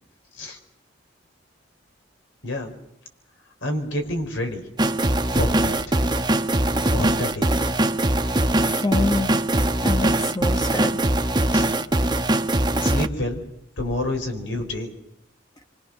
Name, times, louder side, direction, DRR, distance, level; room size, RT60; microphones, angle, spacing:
voice 1, 2.4-2.7 3.6-4.6 5.3-6.0 6.9-7.5 11.5-11.7 12.8-13.4 13.8-14.9, left 1 dB, 75° left, 4 dB, 4.9 m, -28 dB
sound 1, 4.8-13.1, right 1 dB, 20° right, 1.0 m, -21 dB
voice 2, 8.1-9.4 9.8-11.0, left 2 dB, 20° left, 5 dB, 1.1 m, -27 dB
26.0 x 24.5 x 6.6 m, 0.86 s
head